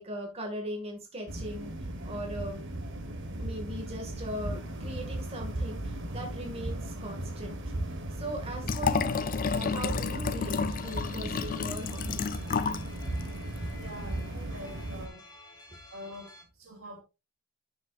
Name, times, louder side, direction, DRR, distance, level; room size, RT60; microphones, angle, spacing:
voice 1, 0.0-2.7 3.4-7.6 8.2-12.2, equal, 30° right, 1.8 m, -39 dB
sound 1, 1.3-15.1, right 1 dB, 55° right, 1.2 m, -37 dB
Liquid, 8.6-12.9 13.2-13.3, left 5 dB, 40° left, 0.5 m, -31 dB
sound 2, 10.8-16.4, left 2 dB, 20° left, 2.1 m, -52 dB
voice 2, 13.7-15.2 15.9-17.0, equal, 75° right, 2.8 m, -45 dB
9.4 x 7.3 x 2.4 m
head